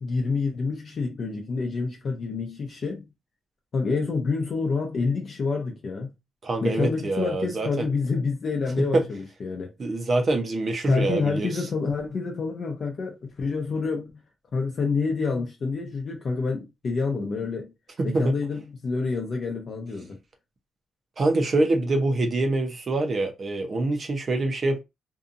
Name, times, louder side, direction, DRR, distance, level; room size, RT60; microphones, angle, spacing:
voice 1, 0.0-3.1 3.7-6.1 6.6-9.7 10.9-14.2 14.5-17.7 18.0-20.2, left 4 dB, 45° left, 0.6 m, -28 dB
voice 2, 6.4-7.9 8.9-9.0 9.8-11.5 18.0-18.4 21.2-24.8, right 2 dB, 35° right, 0.7 m, -25 dB
2.7 x 2.5 x 2.5 m
cardioid pair, 130°, 0 cm